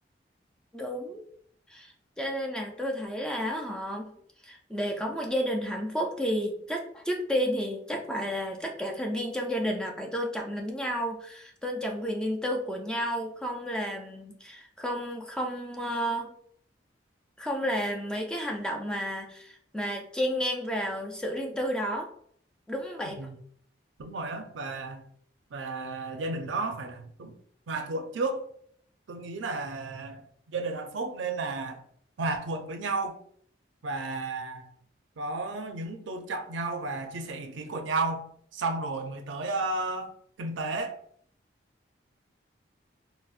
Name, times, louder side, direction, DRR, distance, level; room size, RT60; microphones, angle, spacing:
voice 1, 0.7-1.2 1.7-4.2 4.4-16.3 17.4-22.1 22.7-23.3, equal, 5° left, 0.3 m, -31 dB
voice 2, 24.0-25.0 25.5-27.3 27.7-28.4 29.1-30.2 30.5-31.8 32.2-33.2 33.8-34.7 35.2-38.3 38.5-40.1 40.4-40.9, right 3 dB, 85° right, 0.5 m, -33 dB
3.9 x 2.0 x 2.4 m
head